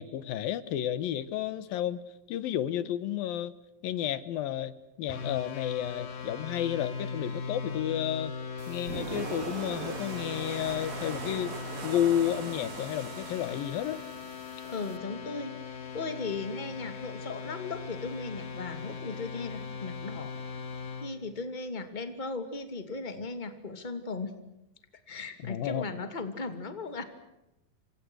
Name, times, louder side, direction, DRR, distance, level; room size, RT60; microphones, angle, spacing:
voice 1, 0.0-2.0 2.3-3.5 3.8-8.3 8.7-11.5 11.8-14.0 25.4-25.9, left 11 dB, 85° left, 15 dB, 3.0 m, -31 dB
sound 1, 5.1-21.1, left 5 dB, 70° left, 4.5 m, -39 dB
sound 2, 8.6-15.0, right 7 dB, 90° right, 3.9 m, -41 dB
voice 2, 14.6-15.5 15.9-20.3 21.0-24.3 25.1-27.0, left 3 dB, 15° left, 9 dB, 2.3 m, -37 dB
29.5 x 26.0 x 6.4 m, 0.91 s
omnidirectional pair, 4.1 m